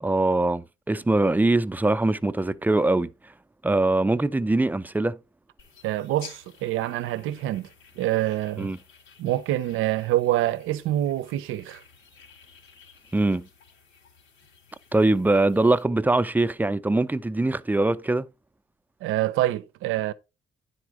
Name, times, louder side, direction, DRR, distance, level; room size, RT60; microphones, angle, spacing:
voice 1, 0.0-3.1 3.6-5.2 8.6-8.8 13.1-13.5 14.9-18.3, right 2 dB, 10° right, 0.4 m, -22 dB
sound 1, 5.6-15.8, left 5 dB, 90° left, 3.0 m, -52 dB
voice 2, 5.8-7.7 8.0-8.7 9.2-11.8 19.0-20.1, right 14 dB, 90° right, 0.5 m, -26 dB
9.9 x 4.3 x 4.6 m
cardioid pair, 90°, 20 cm